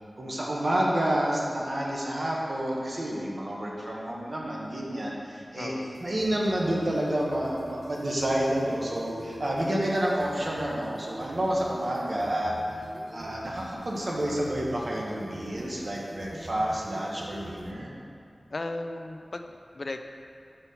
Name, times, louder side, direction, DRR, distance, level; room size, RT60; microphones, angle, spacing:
voice 1, 0.2-5.7 6.0-12.6 13.1-17.9, right 1 dB, 55° right, -3 dB, 1.1 m, -29 dB
voice 2, 5.5-6.0 18.5-20.0, left 2 dB, 55° left, 6 dB, 0.3 m, -36 dB
sound 1, 5.7-17.7, right 1 dB, 80° right, 0.6 m, -45 dB
5.7 x 4.2 x 5.5 m, 2.5 s
wide cardioid pair, 70°, 0 cm